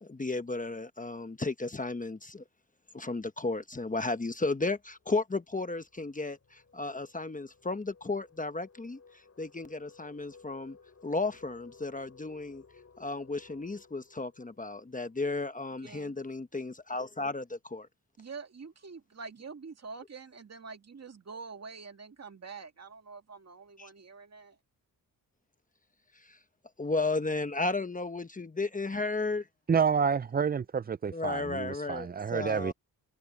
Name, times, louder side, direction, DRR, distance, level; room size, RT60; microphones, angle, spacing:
voice 1, 0.0-2.4 2.9-9.0 9.4-10.8 11.0-12.6 13.0-17.9 23.8-23.9 26.2-26.4 26.8-29.5 31.1-32.7, left 3 dB, 20° left, 1.1 m, -34 dB
sound 1, 4.4-15.9, left 5 dB, 40° left, 6.6 m, -59 dB
voice 2, 15.8-16.1 18.2-24.6, right 4 dB, 40° right, 2.3 m, -46 dB
voice 3, 29.7-32.7, right 6 dB, 25° right, 0.4 m, -29 dB
cardioid pair, 95°, 38 cm